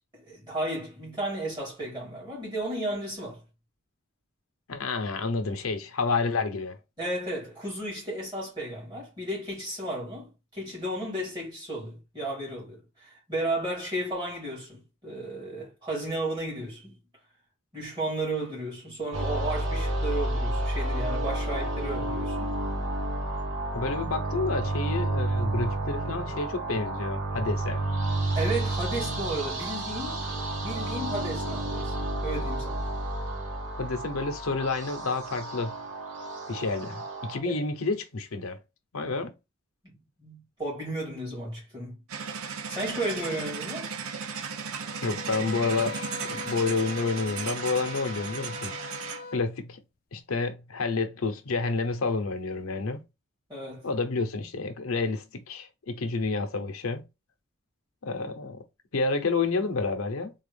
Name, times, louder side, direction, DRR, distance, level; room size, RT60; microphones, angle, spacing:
voice 1, 0.2-3.4 7.0-16.9 17.7-22.6 28.3-30.2 30.6-32.8 37.5-37.6 39.8-42.0 42.7-43.9 53.5-53.9, right 1 dB, 20° right, 2.1 m, -34 dB
voice 2, 4.7-6.8 23.7-27.8 33.8-35.7 36.5-38.6 38.9-39.3 45.0-48.8 49.3-49.8 50.1-53.0 53.8-57.0 58.0-58.6 58.9-60.3, left 3 dB, 90° left, 0.6 m, -29 dB
sound 1, 19.1-37.4, right 2 dB, 70° right, 1.1 m, -30 dB
sound 2, 42.1-49.3, right 6 dB, 85° right, 0.5 m, -36 dB
sound 3, 44.9-49.5, left 3 dB, 40° left, 0.3 m, -40 dB
3.4 x 2.3 x 3.3 m
head